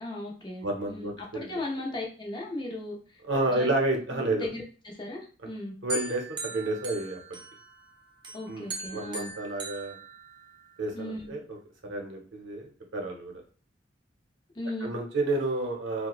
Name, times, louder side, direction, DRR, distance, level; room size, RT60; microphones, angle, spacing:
voice 1, 0.0-3.0 3.5-3.7 4.1-5.7 8.3-9.3 10.9-11.3 14.5-14.9, left 1 dB, 25° left, -1 dB, 0.5 m, -37 dB
voice 2, 0.6-1.6 3.2-4.5 5.8-7.2 8.5-10.0 10.8-11.6 11.8-13.3 14.8-16.1, right 2 dB, 80° right, 1 dB, 0.7 m, -30 dB
sound 1, 5.9-7.8 8.2-10.8, right 2 dB, 25° right, 0.5 m, -39 dB
2.9 x 2.1 x 2.4 m, 0.38 s
head